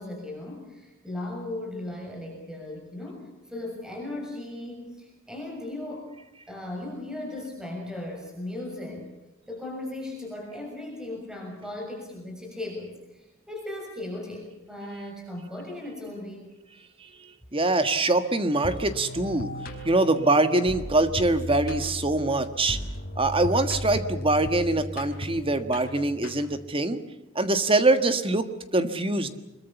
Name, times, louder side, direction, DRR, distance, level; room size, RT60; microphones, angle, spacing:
voice 1, 0.0-6.1 6.5-9.1 9.5-16.5, left 1 dB, 5° right, 1 dB, 6.7 m, -37 dB
voice 2, 17.5-19.5 19.8-22.8 23.2-27.0 27.3-28.5 28.7-29.3, right 2 dB, 25° right, 10 dB, 1.6 m, -23 dB
sound 1, 18.6-26.7, equal, 50° left, 4.6 m, -36 dB
25.0 x 22.5 x 7.2 m, 0.95 s
head